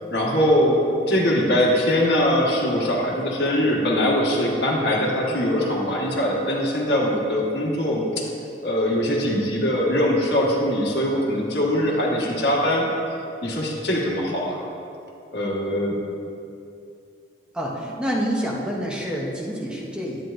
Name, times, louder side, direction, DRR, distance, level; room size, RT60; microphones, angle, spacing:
voice 1, 0.1-0.8 1.1-8.3 8.6-12.9 13.4-14.6 15.3-16.0, equal, 75° left, -2 dB, 1.5 m, -22 dB
voice 2, 17.5-20.2, equal, 5° right, -3 dB, 0.8 m, -27 dB
10.0 x 9.6 x 2.6 m, 2.6 s
head